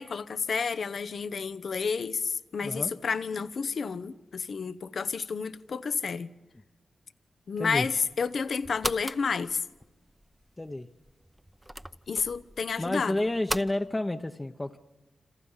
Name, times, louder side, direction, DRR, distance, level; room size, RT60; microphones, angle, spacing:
voice 1, 0.0-6.3 7.5-9.6 12.1-13.2, left 5 dB, 70° left, 0.9 m, -30 dB
voice 2, 2.6-2.9 7.6-7.9 10.6-10.9 12.8-14.8, left 1 dB, 25° left, 0.9 m, -30 dB
sound 1, 8.1-13.7, equal, 5° right, 0.9 m, -39 dB
27.5 x 27.0 x 5.7 m
cardioid pair, 55°, 0 cm